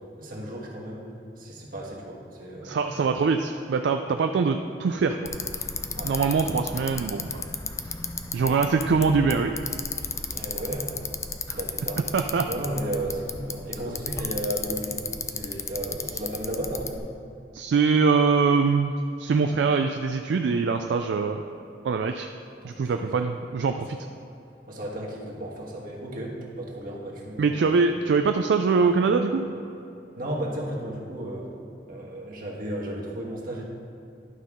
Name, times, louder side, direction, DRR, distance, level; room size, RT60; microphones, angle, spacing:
voice 1, 0.2-1.1 1.4-3.0 5.9-6.1 10.2-11.1 11.5-12.0 12.4-17.0 22.6-23.3 23.8-24.0 24.7-27.6 28.6-28.8 29.0-29.1 30.2-31.5 31.9-33.6, right 1 dB, 55° right, -3 dB, 1.5 m, -34 dB
voice 2, 2.6-5.3 6.0-7.4 8.3-9.6 11.5-11.6 12.1-12.5 17.5-18.9 19.2-21.4 21.8-22.3 22.6-24.0 27.4-29.4, right 5 dB, 70° right, 6 dB, 0.3 m, -23 dB
Bicycle, 5.3-17.0, left 4 dB, 15° left, 0.4 m, -34 dB
11.0 x 5.5 x 3.6 m, 2.8 s
head